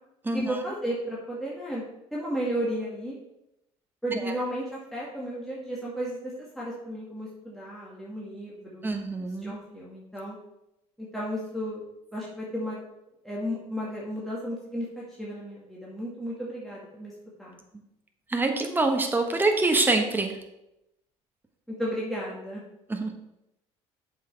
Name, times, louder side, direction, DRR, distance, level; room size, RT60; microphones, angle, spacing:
voice 1, 0.3-1.9 2.1-3.1 4.0-8.8 9.4-10.4 11.0-11.8 12.1-12.8 13.2-17.1 17.4-17.6 21.8-22.6, equal, ahead, -6 dB, 2.1 m, -33 dB
voice 2, 8.8-9.6 18.3-20.3 22.9-23.1, right 2 dB, 15° right, 3 dB, 1.3 m, -25 dB
7.7 x 5.8 x 4.6 m, 0.88 s
supercardioid pair, 85°, 13 cm